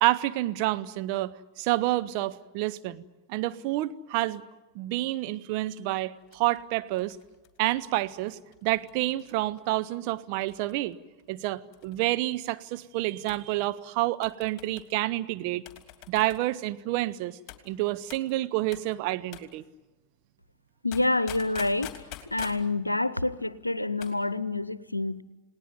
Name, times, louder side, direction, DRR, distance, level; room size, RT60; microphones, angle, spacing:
voice 1, 0.0-3.0 3.3-4.4 4.7-7.2 7.6-11.0 11.3-15.6 16.1-17.4 17.7-19.6, right 17 dB, 45° right, 1.0 m, -29 dB
sound 1, 6.3-9.7 10.5-10.9 11.2-11.3 11.7-12.1 13.3-13.5 14.2-14.9 15.7-16.5 17.5-17.7 18.1-18.3 18.7-18.9 19.3-19.5 20.9-22.7 23.8-24.2 24.5-24.6, left 12 dB, 35° left, 3.0 m, -46 dB
voice 2, 20.8-21.9 22.3-25.2, left 2 dB, 85° left, 0.9 m, -27 dB
29.5 x 19.0 x 9.6 m
figure-of-eight pair, 90°, 0 cm